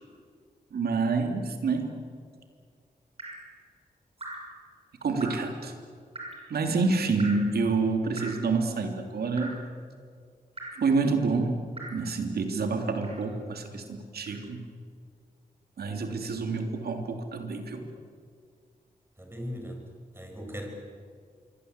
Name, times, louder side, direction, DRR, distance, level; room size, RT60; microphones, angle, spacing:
voice 1, 0.7-2.0 5.0-5.7 6.5-9.6 10.8-11.6 11.9-14.6 15.8-17.8, right 4 dB, 85° right, 5 dB, 3.2 m, -28 dB
Drip, 3.2-3.5 4.2-4.6 5.2-5.5 6.1-6.5 7.2-7.5 8.2-8.5 9.4-9.7 10.6-10.9 11.8-12.1 13.0-13.3 14.3-14.4, right 2 dB, 40° right, 6.0 m, -41 dB
voice 2, 19.2-19.9 20.1-20.7, equal, 15° right, 2 dB, 7.9 m, -38 dB
26.0 x 24.0 x 8.3 m, 2.1 s
cardioid pair, 60°, 16 cm